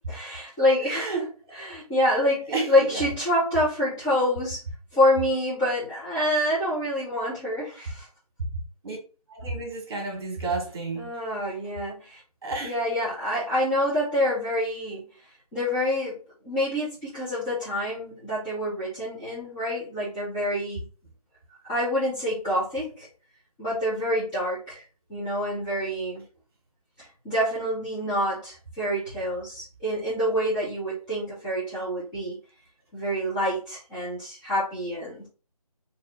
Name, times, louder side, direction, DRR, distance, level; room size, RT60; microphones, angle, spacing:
voice 1, 0.1-4.6 4.9-8.1 10.9-12.2 12.6-15.1 15.5-16.2 16.4-20.8 21.7-23.1 23.6-24.8 25.1-26.2 27.0-32.4 32.9-35.3, left 1 dB, 15° left, 1.1 m, -27 dB
voice 2, 0.9-1.3 2.5-3.0 8.4-8.5 8.8-9.0 9.3-11.1 12.4-12.7, right 3 dB, 40° right, 1.4 m, -31 dB
3.2 x 2.9 x 3.9 m
figure-of-eight pair, 155°, 20 cm